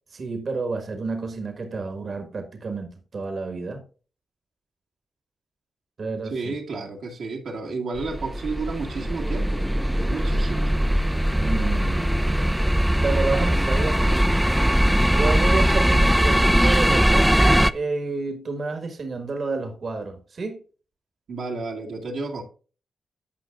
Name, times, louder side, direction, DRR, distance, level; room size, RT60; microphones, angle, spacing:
voice 1, 0.1-3.8 6.0-6.5 11.3-12.4 13.0-14.5 15.1-20.6, right 3 dB, 60° right, 1.6 m, -30 dB
voice 2, 6.2-9.7 10.1-10.7 21.3-22.4, right 4 dB, 75° right, 1.7 m, -31 dB
sound 1, 8.0-17.7, equal, 5° right, 0.5 m, -20 dB
15.0 x 5.5 x 2.5 m
supercardioid pair, 50°, 0 cm